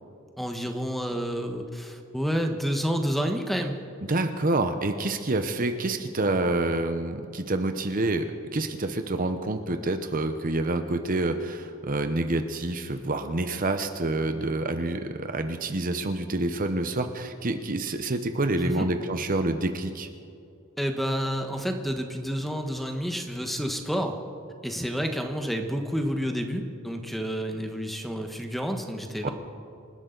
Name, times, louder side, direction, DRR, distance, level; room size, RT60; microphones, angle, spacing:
voice 1, 0.4-3.8 18.6-18.9 20.8-24.2 24.6-29.3, equal, ahead, 4 dB, 1.2 m, -29 dB
voice 2, 4.1-20.1 29.2-29.3, right 2 dB, 40° right, 8 dB, 0.8 m, -27 dB
27.0 x 12.5 x 3.9 m, 2.6 s
head